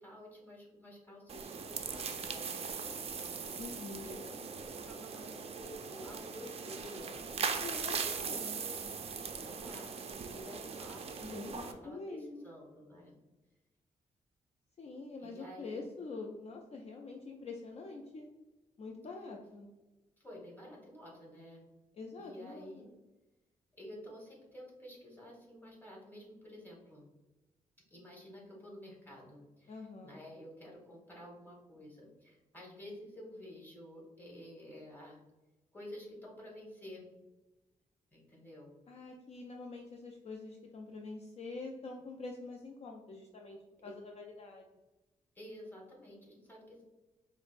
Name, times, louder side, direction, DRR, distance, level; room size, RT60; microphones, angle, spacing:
voice 1, 0.0-7.3 8.0-8.5 8.7-13.1 15.2-15.9 20.2-21.6 22.2-22.9 23.7-27.0 27.9-35.2 35.7-37.0 38.1-38.7 43.8-43.9 45.3-46.8, left 1 dB, 15° left, -3 dB, 1.2 m, -51 dB
sound 1, 1.3-11.7, right 5 dB, 45° right, 0.4 m, -40 dB
voice 2, 3.6-4.1 7.6-8.6 11.2-12.5 14.8-18.3 18.8-19.7 22.0-22.9 29.7-30.2 38.9-44.6, left 3 dB, 45° left, 1 dB, 0.4 m, -45 dB
4.8 x 2.0 x 2.4 m, 1.1 s
cardioid pair, 85°, 14 cm